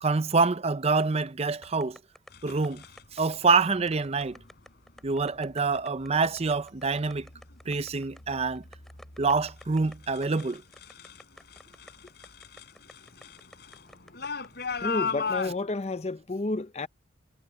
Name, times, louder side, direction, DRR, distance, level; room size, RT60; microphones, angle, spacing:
voice 1, 0.0-2.0 2.4-2.8 3.1-4.4 5.0-7.3 7.7-8.6 9.2-10.6, right 4 dB, 35° right, 0.6 m, -26 dB
sound 1, 1.6-14.5, equal, ahead, 5.3 m, -52 dB
sound 2, 2.3-3.0 4.1-4.5 5.0-5.5 6.0-6.6 6.9-11.2 11.5-15.5, left 5 dB, 60° left, 4.1 m, -37 dB
voice 2, 14.8-16.9, left 2 dB, 35° left, 0.7 m, -30 dB
head